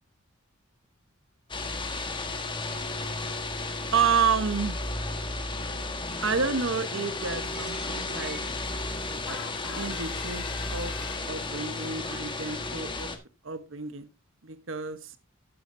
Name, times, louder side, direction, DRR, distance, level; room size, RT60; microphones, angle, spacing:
sound 1, 1.5-13.2, left 2 dB, 25° left, 1.4 m, -33 dB
voice 1, 3.9-4.8 6.2-8.4 9.3-9.4 9.8-10.5 10.7-10.9 11.2-13.1 13.4-14.1 14.4-15.1, right 5 dB, 65° right, 12 dB, 1.0 m, -29 dB
Coin (dropping), 7.5-9.3 9.9-10.1 10.7-10.8 11.0-13.0, right 1 dB, 5° right, 1.6 m, -51 dB
sound 2, 9.3-11.7, left 8 dB, 75° left, 0.7 m, -43 dB
12.0 x 9.8 x 2.7 m, 0.27 s
head